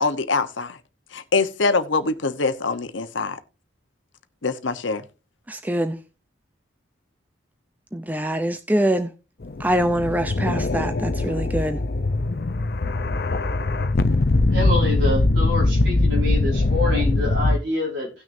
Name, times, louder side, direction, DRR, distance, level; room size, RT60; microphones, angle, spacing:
voice 1, 0.0-0.8 1.1-3.4 4.4-5.0, left 3 dB, 75° left, 1.0 m, -24 dB
voice 2, 5.5-6.0 7.9-9.1 9.6-11.8, right 1 dB, 10° right, 0.5 m, -24 dB
sound 1, 9.4-17.6, left 2 dB, 50° left, 0.6 m, -21 dB
voice 3, 14.5-18.1, left 2 dB, 65° right, 4.9 m, -26 dB
17.5 x 6.3 x 2.6 m
head